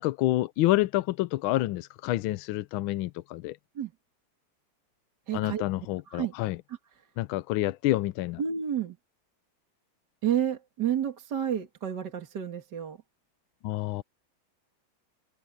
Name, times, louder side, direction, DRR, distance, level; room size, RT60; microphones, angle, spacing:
voice 1, 0.0-3.6 5.3-6.6 7.2-8.4 13.6-14.0, left 16 dB, 80° left, 1.4 m, -28 dB
voice 2, 5.3-5.6 6.1-6.3 6.7-6.8 8.4-9.0 10.2-13.0, right 9 dB, 55° right, 2.3 m, -30 dB
omnidirectional pair, 2.2 m